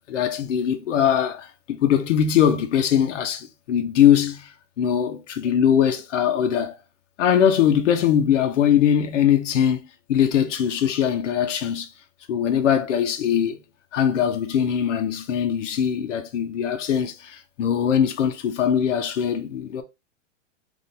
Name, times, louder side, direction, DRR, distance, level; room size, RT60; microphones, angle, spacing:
voice 1, 0.1-4.5 4.8-6.8 7.2-9.8 10.1-11.9 12.3-13.6 13.9-19.8, left 9 dB, 70° left, 0.9 m, -21 dB
4.2 x 2.7 x 3.3 m
supercardioid pair, 170°, 38 cm